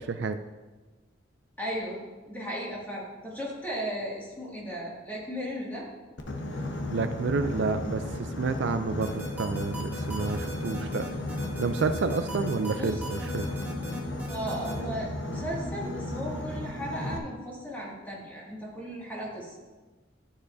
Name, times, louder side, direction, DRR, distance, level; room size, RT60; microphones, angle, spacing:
voice 1, 1.6-2.0 2.3-5.9 12.7-13.0 14.2-19.6, equal, 10° left, -6 dB, 2.1 m, -36 dB
Boat Water vehicle, 6.2-17.2, left 1 dB, 65° left, 0.9 m, -34 dB
voice 2, 6.9-11.1 11.6-13.5, right 4 dB, 65° right, 9 dB, 0.4 m, -29 dB
sound 1, 9.0-14.7, right 1 dB, 10° right, 1.1 m, -40 dB
12.0 x 6.8 x 2.7 m, 1.2 s
head